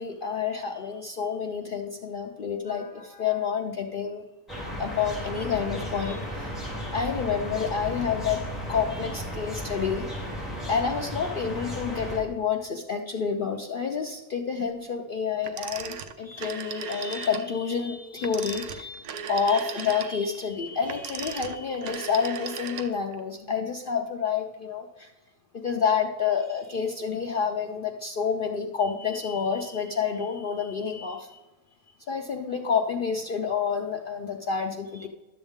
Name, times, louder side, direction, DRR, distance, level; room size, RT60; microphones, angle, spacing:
voice 1, 0.0-4.2 4.7-6.6 6.9-8.4 8.7-10.1 10.7-25.1 25.5-31.5 32.1-35.1, left 6 dB, 75° left, 3 dB, 0.4 m, -29 dB
sound 1, 4.5-12.2, equal, ahead, 2.8 m, -34 dB
Telephone, 15.4-17.5 18.2-23.2, right 7 dB, 75° right, 1.1 m, -37 dB
11.5 x 7.1 x 3.5 m, 1.1 s
omnidirectional pair, 1.6 m